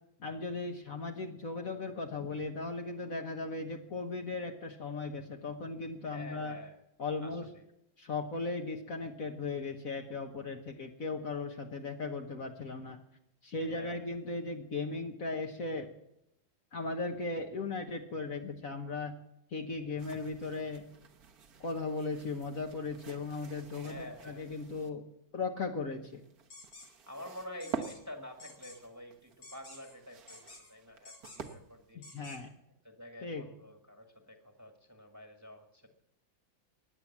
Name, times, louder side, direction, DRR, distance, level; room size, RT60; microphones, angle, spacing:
voice 1, 0.2-6.6 7.0-7.4 8.0-13.0 13.4-15.9 16.7-19.1 19.5-20.8 21.6-25.0 25.3-26.2 31.9-32.5 33.2-33.4, left 3 dB, 50° left, 3 dB, 1.5 m, -37 dB
voice 2, 6.0-6.8 7.2-7.7 13.6-14.1 23.9-24.4 27.1-32.1 32.8-35.9, left 1 dB, 10° right, 4 dB, 1.6 m, -48 dB
sound 1, 20.0-24.9 25.9-31.9, right 6 dB, 55° right, 1.6 m, -48 dB
sound 2, 26.5-26.9 27.6-28.0 28.4-28.8 29.4-30.0 30.3-30.7 31.1-31.6 32.0-32.4, left 2 dB, 80° left, 5.2 m, -51 dB
16.5 x 10.5 x 7.3 m, 0.79 s
omnidirectional pair, 2.1 m